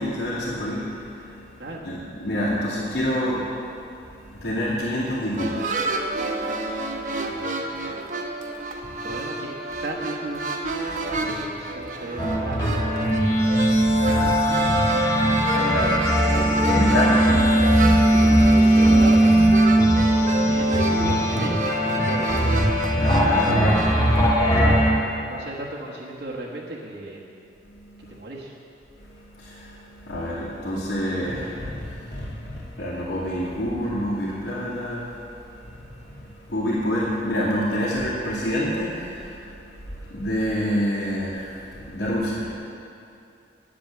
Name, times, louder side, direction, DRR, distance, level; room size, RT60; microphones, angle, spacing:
voice 1, 0.0-7.4 8.8-9.1 11.0-11.4 13.0-17.2 18.0-18.1 19.8-20.2 23.0-24.6 27.6-28.2 28.9-42.5, equal, 75° left, -11 dB, 2.4 m, -29 dB
sound 1, 5.4-24.3, right 3 dB, 45° right, 1.0 m, -30 dB
voice 2, 7.2-8.1 9.0-9.5 9.8-10.5 11.2-12.7 17.2-17.6 18.0-19.3 20.1-23.0 24.6-24.9 25.3-27.2 28.1-28.5, right 1 dB, 70° right, -4 dB, 1.5 m, -35 dB
sound 2, 12.2-24.9, right 1 dB, 20° left, 1.6 m, -19 dB
10.0 x 9.1 x 7.6 m, 2.6 s
head